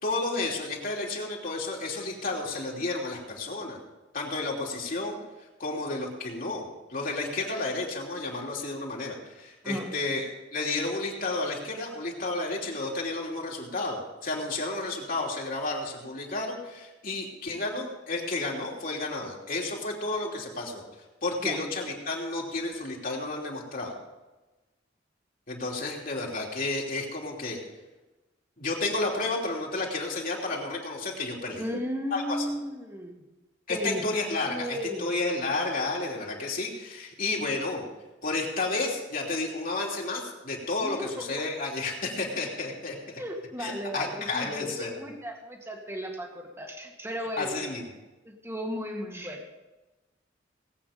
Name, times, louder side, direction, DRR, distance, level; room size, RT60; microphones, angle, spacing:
voice 1, 0.0-3.8 4.1-5.2 5.6-10.2 10.5-20.8 21.2-23.9 25.5-27.6 28.6-31.6 32.1-32.4 33.7-37.9 38.2-43.2 43.6-44.9 47.2-47.8, left 2 dB, 50° left, -2 dB, 3.0 m, -31 dB
voice 2, 31.6-33.2 33.7-34.1 34.4-35.2 40.8-41.3 43.2-47.8 48.3-49.4, equal, 15° right, 2 dB, 1.9 m, -35 dB
19.0 x 8.6 x 5.1 m, 1.1 s
head